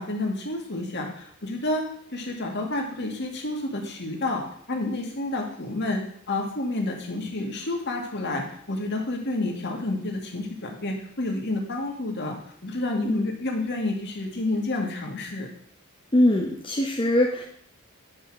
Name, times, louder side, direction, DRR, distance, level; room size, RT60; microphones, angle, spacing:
voice 1, 0.0-1.8 2.1-4.4 4.7-8.4 8.7-12.4 12.6-15.5, left 2 dB, 55° left, 1 dB, 2.2 m, -29 dB
voice 2, 16.1-17.4, left 1 dB, 25° left, 0 dB, 1.0 m, -22 dB
9.9 x 5.4 x 6.2 m, 0.63 s
head